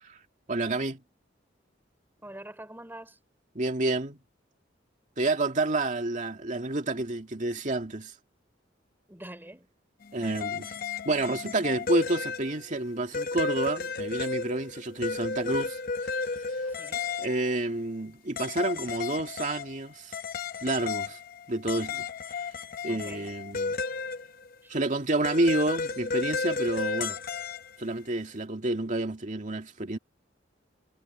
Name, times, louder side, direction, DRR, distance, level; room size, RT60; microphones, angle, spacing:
voice 1, 0.5-1.0 3.5-4.2 5.2-8.1 10.1-10.7 11.0-16.6 17.2-20.1 20.6-21.2 21.5-22.1 22.8-23.8 24.7-27.2 27.8-30.0, right 2 dB, 45° right, 2.3 m, -29 dB
voice 2, 2.2-3.2 9.1-9.7 16.6-17.1 22.9-23.3 24.6-24.7, right 1 dB, 10° right, 4.6 m, -45 dB
sound 1, 10.0-12.8 13.1-17.6 18.4-19.8 20.1-24.5 25.2-27.8, left 4 dB, 50° left, 0.8 m, -33 dB
head